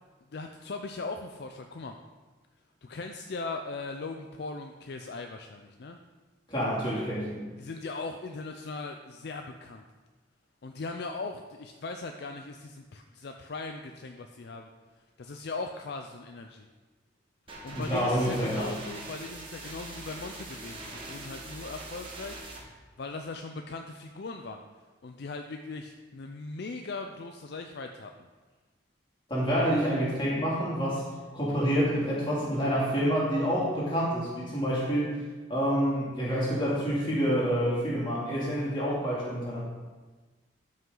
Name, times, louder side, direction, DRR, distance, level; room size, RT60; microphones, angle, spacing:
voice 1, 0.3-2.0 2.8-6.0 7.6-9.8 10.6-14.7 15.2-16.7 17.6-22.5 23.0-24.6 25.0-28.1, left 3 dB, 55° left, 5 dB, 0.4 m, -39 dB
voice 2, 6.5-7.5 17.7-18.7 29.3-31.1 31.3-35.2 35.5-39.6, equal, 25° left, -7 dB, 2.6 m, -28 dB
sound 1, 17.5-22.6, right 2 dB, 25° right, 1.5 m, -42 dB
12.5 x 5.4 x 3.9 m, 1.3 s
head